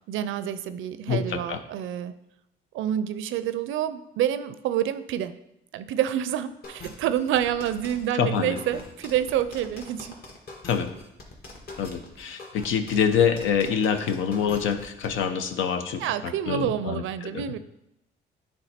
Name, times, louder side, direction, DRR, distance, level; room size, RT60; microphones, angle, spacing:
voice 1, 0.1-2.1 2.7-5.3 5.7-10.2 16.0-17.6, right 10 dB, 85° right, 13 dB, 0.5 m, -28 dB
voice 2, 1.1-1.6 8.1-8.6 10.6-10.9 11.8-17.5, left 7 dB, 85° left, 8 dB, 0.7 m, -26 dB
sound 1, 6.6-15.2, left 2 dB, 50° left, 1.7 m, -43 dB
10.0 x 3.5 x 4.3 m, 0.86 s
cardioid pair, 90°, 20 cm